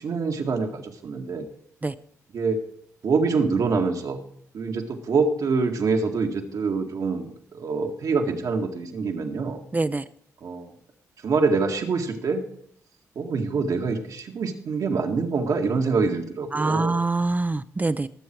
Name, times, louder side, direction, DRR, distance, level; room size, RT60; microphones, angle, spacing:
voice 1, 0.0-1.5 2.3-2.6 3.0-4.2 4.5-9.6 10.4-10.7 11.2-12.4 13.2-17.0, right 4 dB, 70° right, 3 dB, 1.9 m, -25 dB
voice 2, 9.7-10.0 16.5-18.1, right 3 dB, 25° right, 13 dB, 0.6 m, -24 dB
19.0 x 7.6 x 4.6 m, 0.64 s
supercardioid pair, 55°, 7 cm